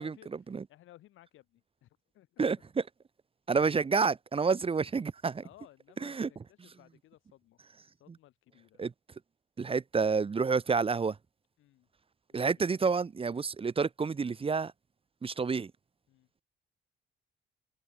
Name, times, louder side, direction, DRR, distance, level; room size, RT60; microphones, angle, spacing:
voice 1, 0.0-2.5 5.4-7.6 7.9-8.9 11.6-11.9 12.3-12.8 16.1-16.3, left 14 dB, 85° left, 4.2 m, -59 dB
voice 2, 2.4-2.8 3.5-5.4 6.0-6.3 8.8-8.9 9.6-11.2 12.3-14.7 15.2-15.7, right 5 dB, 30° right, 0.8 m, -29 dB
cardioid pair, 90°, 20 cm